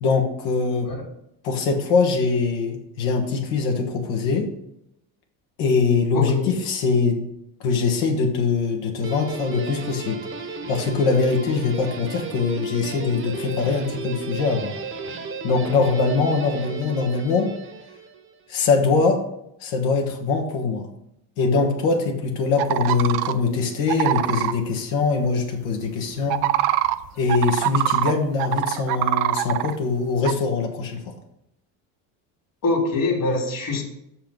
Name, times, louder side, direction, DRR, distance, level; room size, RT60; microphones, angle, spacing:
voice 1, 0.0-0.9 1.4-4.5 5.6-7.3 7.6-10.2 10.7-14.7 15.4-17.5 18.5-19.2 19.6-20.9 21.4-26.5 27.2-31.1, left 4 dB, 75° left, 2 dB, 1.4 m, -22 dB
voice 2, 6.1-6.5 32.6-33.8, left 3 dB, 45° left, 2 dB, 2.3 m, -23 dB
Guitar, 9.0-18.3, right 4 dB, 30° right, 1.1 m, -34 dB
sound 1, 22.6-23.3 23.9-24.5 26.2-28.1 28.4-29.7 30.2-30.3, right 15 dB, 60° right, 0.6 m, -23 dB
5.9 x 4.4 x 5.3 m, 0.79 s
supercardioid pair, 80°, 45 cm